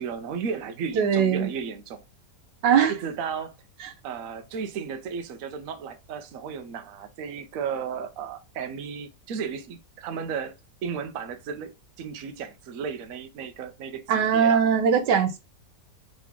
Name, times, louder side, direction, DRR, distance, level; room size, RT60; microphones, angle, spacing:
voice 1, 0.0-2.0 2.9-3.5 4.0-10.5 10.8-14.6, right 6 dB, 60° right, 1.0 m, -34 dB
voice 2, 1.0-1.5 2.6-2.9 14.1-15.4, right 7 dB, 90° right, 1.5 m, -20 dB
3.8 x 3.2 x 3.4 m
omnidirectional pair, 1.8 m